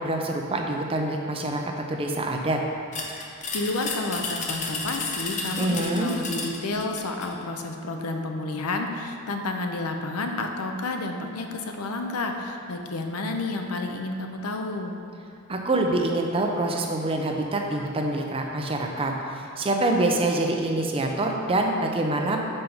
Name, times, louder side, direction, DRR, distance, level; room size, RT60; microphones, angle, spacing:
voice 1, 0.0-2.6 5.6-6.1 15.5-22.5, right 2 dB, 25° right, 2 dB, 0.5 m, -26 dB
sound 1, 2.9-7.3, left 3 dB, 35° left, 0.6 m, -33 dB
voice 2, 3.5-15.0, left 2 dB, 85° left, 4 dB, 0.6 m, -30 dB
5.4 x 4.5 x 5.4 m, 2.5 s
head